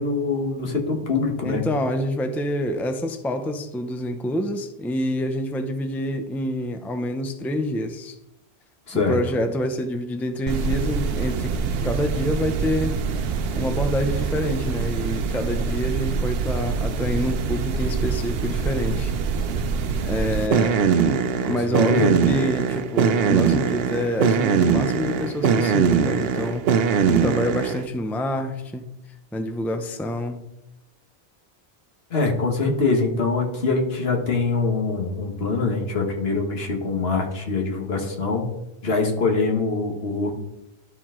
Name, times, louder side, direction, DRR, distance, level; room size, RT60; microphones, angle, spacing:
voice 1, 0.0-1.6 8.9-9.2 21.4-22.1 32.1-38.5 38.8-40.3, left 4 dB, 70° left, 2 dB, 1.6 m, -24 dB
voice 2, 1.4-8.2 8.9-13.0 13.5-19.1 20.0-20.8 21.5-26.7 27.1-28.9 29.3-30.4, left 1 dB, ahead, 7 dB, 0.5 m, -27 dB
sound 1, 10.5-27.9, right 6 dB, 70° right, 0.8 m, -23 dB
12.0 x 4.5 x 3.7 m, 0.89 s
omnidirectional pair, 1.1 m